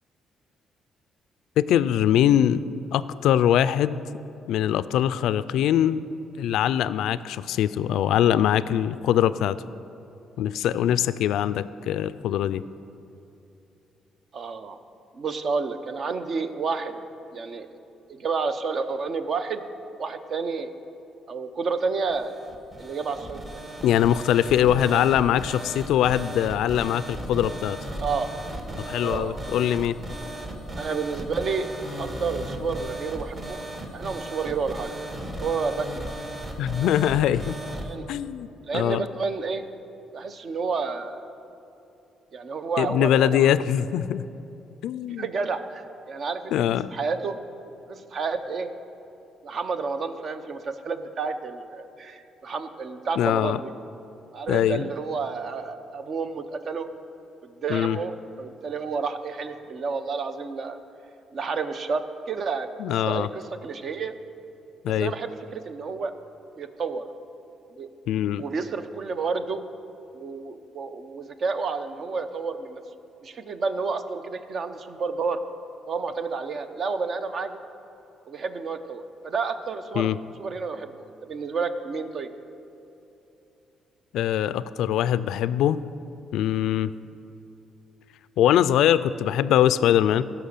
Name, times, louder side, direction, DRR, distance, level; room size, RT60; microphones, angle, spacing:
voice 1, 1.6-2.6 2.9-4.0 4.5-6.1 6.4-9.6 10.4-12.6 23.8-27.8 28.8-30.0 36.6-37.6 38.1-38.5 38.7-39.1 42.8-44.2 44.8-45.3 46.5-46.9 53.2-53.6 54.5-54.9 57.7-58.0 62.8-63.3 64.8-65.1 68.1-68.4 80.0-80.2 84.1-85.8 86.3-86.9 88.4-90.2, left 11 dB, 85° left, 16 dB, 0.3 m, -22 dB
voice 2, 14.3-14.8 15.1-17.0 17.3-17.7 18.2-19.6 20.0-20.7 21.3-22.3 22.8-23.6 24.7-25.0 28.0-28.3 29.0-29.4 30.8-31.7 32.0-33.6 33.9-34.9 35.4-36.1 37.8-38.1 38.6-39.6 40.1-41.2 42.3-43.6 45.2-46.5 46.9-47.4 47.9-48.7 49.4-53.7 54.3-56.9 57.4-60.8 61.3-62.7 63.1-64.2 65.0-66.1 66.6-67.1 67.7-67.9 68.4-69.6 70.1-72.8 73.2-75.4 75.9-77.6 78.3-80.1 80.4-82.3, right 4 dB, 55° right, 9 dB, 0.8 m, -30 dB
sound 1, 22.0-37.9, right 1 dB, 35° right, 1.7 m, -36 dB
16.5 x 6.0 x 6.7 m, 2.9 s
cardioid pair, 90°, 0 cm